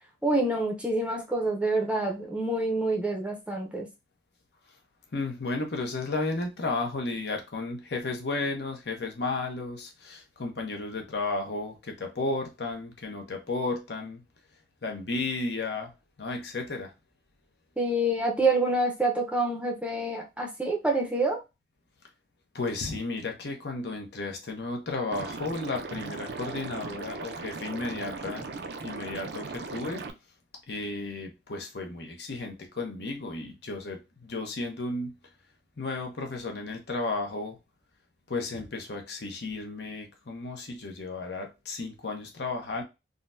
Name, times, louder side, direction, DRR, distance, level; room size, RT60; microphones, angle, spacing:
voice 1, 0.2-3.9 17.8-21.4, right 2 dB, 5° right, 0.6 m, -27 dB
voice 2, 5.1-14.2 14.8-15.9 16.2-16.9 22.5-28.5 28.8-30.1 30.7-35.1 35.8-37.6 38.3-42.8, left 3 dB, 70° left, 0.8 m, -33 dB
Liquid, 25.1-30.1, right 4 dB, 70° right, 0.5 m, -38 dB
3.8 x 2.1 x 2.5 m
head